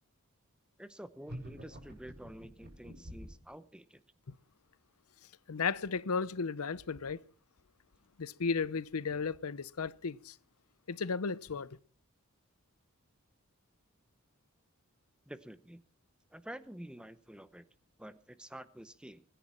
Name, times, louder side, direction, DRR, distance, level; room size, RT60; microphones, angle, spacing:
voice 1, 0.8-4.0 15.3-15.8 16.3-17.6 18.0-19.2, right 1 dB, 5° right, 0.7 m, -49 dB
sound 1, 1.2-3.5, equal, 45° right, 7.5 m, -47 dB
voice 2, 5.5-7.2 8.2-10.3 10.9-11.7, left 5 dB, 80° left, 0.7 m, -34 dB
24.5 x 10.5 x 4.3 m
head